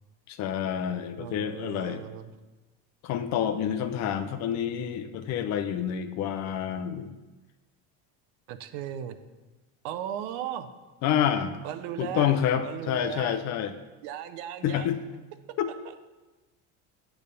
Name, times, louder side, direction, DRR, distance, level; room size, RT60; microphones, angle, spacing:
voice 1, 0.3-2.0 3.0-7.1 11.0-11.5 12.0-13.7 14.6-15.0 15.6-15.7, left 9 dB, 50° left, 10 dB, 0.6 m, -28 dB
voice 2, 1.2-2.3 8.5-9.2 9.8-10.7 11.6-12.3 12.6-13.4 14.0-14.9 15.8-16.0, right 10 dB, 80° right, 11 dB, 0.7 m, -36 dB
8.8 x 3.5 x 6.7 m, 1.2 s
cardioid pair, 145°, 34 cm